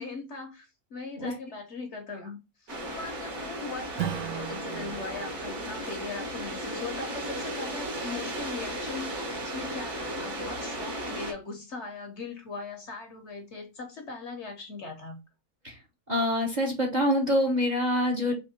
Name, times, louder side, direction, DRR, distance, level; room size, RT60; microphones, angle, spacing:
voice 1, 0.0-15.2, left 4 dB, 55° left, 1.0 m, -40 dB
sound 1, 2.7-11.3, right 1 dB, 50° right, 1.6 m, -35 dB
Strum, 4.0-8.9, right 11 dB, 70° right, 0.9 m, -40 dB
voice 2, 16.1-18.3, equal, 35° right, 0.8 m, -25 dB
3.5 x 3.0 x 4.1 m
omnidirectional pair, 1.6 m